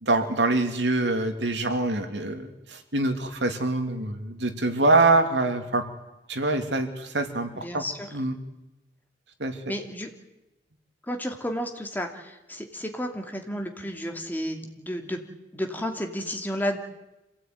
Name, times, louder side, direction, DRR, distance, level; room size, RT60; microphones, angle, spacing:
voice 1, 0.0-5.8 6.3-7.8 8.1-8.4 9.4-9.6, right 2 dB, 80° right, 6 dB, 2.7 m, -25 dB
voice 2, 7.6-7.9 9.7-10.1 11.1-12.1 12.5-15.2 15.5-16.8, equal, 10° left, 4 dB, 2.6 m, -31 dB
27.0 x 17.0 x 9.4 m, 0.99 s
head